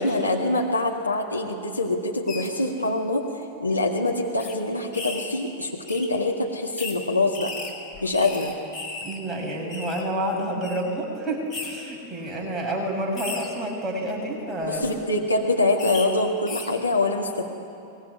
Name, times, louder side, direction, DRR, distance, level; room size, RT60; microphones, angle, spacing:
voice 1, 0.0-3.3 3.6-7.5 8.0-8.5 14.7-17.4, left 2 dB, 85° left, 0 dB, 1.9 m, -24 dB
sound 1, 2.3-2.5 3.3-3.4 3.7-3.8 4.4-4.5 4.9-5.3 5.9-6.1 6.8-7.0 7.3-9.2 9.4-10.0 10.6-10.8 11.5-11.7 12.3-12.5 13.1-13.5 14.6-14.9 15.8-16.1 16.4-16.7, left 3 dB, 25° left, 5.1 m, -35 dB
voice 2, 9.0-14.8, right 1 dB, 10° right, -2 dB, 6.4 m, -29 dB
24.0 x 21.0 x 9.7 m, 2.7 s
figure-of-eight pair, 90°, 0 cm